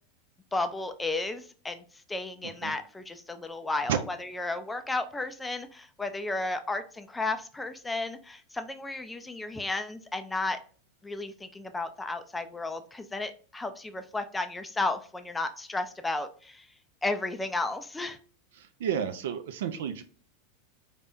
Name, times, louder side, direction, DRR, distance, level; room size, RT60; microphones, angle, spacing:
voice 1, 0.5-1.8 2.1-10.6 11.0-16.7 17.0-18.2, left 2 dB, 10° left, 8 dB, 0.4 m, -33 dB
voice 2, 18.8-20.0, right 8 dB, 60° right, 8 dB, 0.5 m, -30 dB
4.3 x 3.3 x 2.5 m, 0.41 s
figure-of-eight pair, 85°, 0 cm